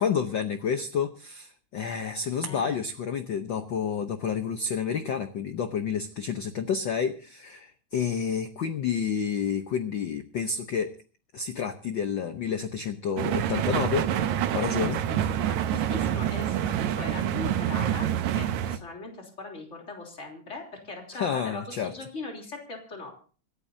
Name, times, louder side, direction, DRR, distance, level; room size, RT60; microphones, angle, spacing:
voice 1, 0.0-10.9 11.3-14.1 14.5-15.0 21.1-21.9, left 7 dB, 80° left, 8 dB, 1.0 m, -29 dB
voice 2, 2.5-2.8 14.8-23.1, left 3 dB, 25° left, 1 dB, 3.4 m, -40 dB
sound 1, 13.2-18.8, right 10 dB, 80° right, 2.3 m, -27 dB
26.5 x 12.5 x 2.7 m, 0.39 s
omnidirectional pair, 3.3 m